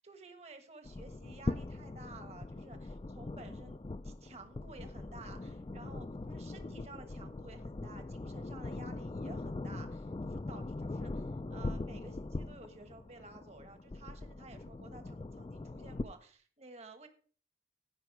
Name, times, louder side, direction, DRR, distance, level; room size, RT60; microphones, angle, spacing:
voice 1, 0.0-17.1, right 3 dB, 35° right, 7 dB, 1.4 m, -53 dB
sound 1, 0.8-16.0, left 2 dB, 30° left, 0.4 m, -41 dB
15.0 x 5.5 x 4.7 m, 0.43 s
head